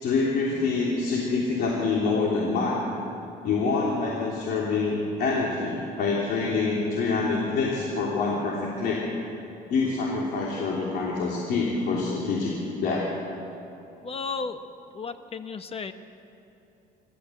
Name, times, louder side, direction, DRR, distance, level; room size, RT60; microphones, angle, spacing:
voice 1, 0.0-2.8 3.4-9.0 9.7-13.1, left 4 dB, 70° left, -3 dB, 3.3 m, -26 dB
voice 2, 14.0-14.6 14.9-15.9, left 4 dB, 35° left, 9 dB, 1.2 m, -33 dB
26.5 x 13.5 x 7.9 m, 2.8 s
cardioid pair, 110°, 17 cm